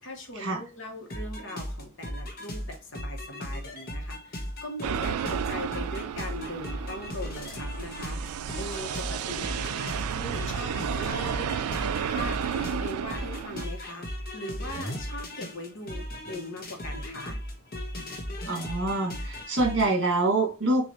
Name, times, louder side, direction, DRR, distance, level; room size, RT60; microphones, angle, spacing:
voice 1, 0.0-11.6 12.1-17.4, left 1 dB, 60° left, 2 dB, 1.3 m, -40 dB
sound 1, 1.1-20.0, equal, 45° left, 1.0 m, -37 dB
sound 2, 4.8-13.7, right 8 dB, 85° right, 0.3 m, -32 dB
voice 2, 18.5-20.9, right 2 dB, 55° right, 2 dB, 1.5 m, -25 dB
6.1 x 2.7 x 2.9 m, 0.33 s
head